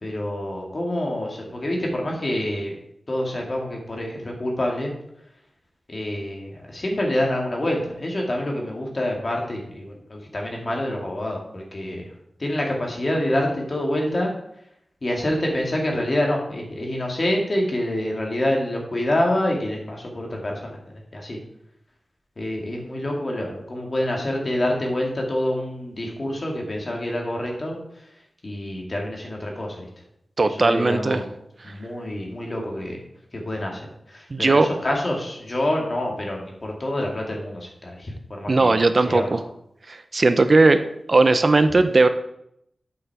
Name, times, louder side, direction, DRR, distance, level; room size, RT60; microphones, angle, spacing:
voice 1, 0.0-2.8 3.1-4.9 5.9-12.1 12.4-14.3 15.0-20.7 21.1-21.4 22.4-27.8 28.4-29.9 30.5-31.3 31.6-33.0 33.3-33.9 34.1-38.8 39.0-39.4, left 1 dB, 45° left, 0 dB, 2.1 m, -27 dB
voice 2, 30.4-31.2 34.3-34.7 38.5-39.4 39.9-40.8 41.1-42.1, right 3 dB, 50° right, 10 dB, 0.5 m, -17 dB
8.4 x 5.6 x 4.7 m, 0.76 s
wide cardioid pair, 70°, 0 cm